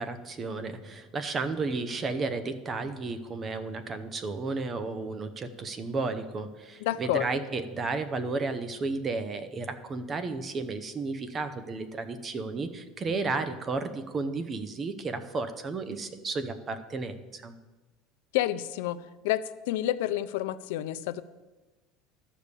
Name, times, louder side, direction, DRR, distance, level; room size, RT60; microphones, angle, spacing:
voice 1, 0.0-17.6, right 3 dB, 20° right, 10 dB, 0.7 m, -33 dB
voice 2, 6.8-7.2 18.3-19.0 19.2-21.2, left 14 dB, 80° left, 12 dB, 0.5 m, -29 dB
12.0 x 5.2 x 8.3 m, 1.2 s
cardioid pair, 170°, 0 cm